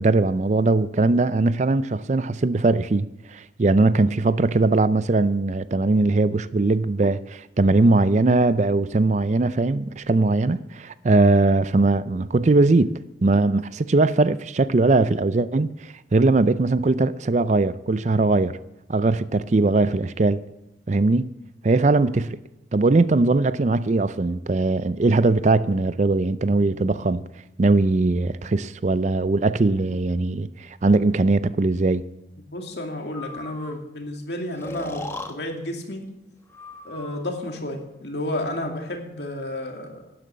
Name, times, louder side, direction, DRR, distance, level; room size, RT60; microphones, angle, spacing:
voice 1, 0.0-12.9 13.2-18.6 18.9-20.4 20.9-21.3 21.6-22.4 22.7-27.2 27.6-32.0, right 3 dB, 40° right, 0.4 m, -20 dB
voice 2, 32.5-35.0 35.3-36.0 36.8-40.0, left 1 dB, 65° left, 2.5 m, -31 dB
Breathing, 33.1-33.8 34.6-35.3 36.5-37.3, left 2 dB, 15° left, 1.0 m, -37 dB
12.0 x 10.0 x 7.5 m
head